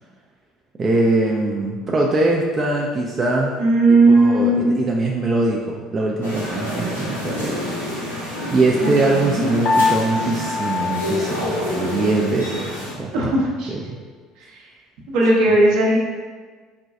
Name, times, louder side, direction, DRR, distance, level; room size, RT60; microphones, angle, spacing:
voice 1, 0.8-3.5 3.9-7.8 8.5-13.1 13.7-14.0, right 2 dB, 30° right, -1 dB, 0.4 m, -22 dB
voice 2, 3.6-4.8 8.8-9.5 13.1-13.7 14.4-14.6 15.1-16.0, right 2 dB, 60° right, -3 dB, 0.7 m, -17 dB
sound 1, 6.2-12.9, left 1 dB, 85° left, 0.6 m, -28 dB
Piano, 9.7-12.2, left 3 dB, 45° left, 0.4 m, -24 dB
4.2 x 2.2 x 2.5 m, 1.5 s
figure-of-eight pair, 60°, 0 cm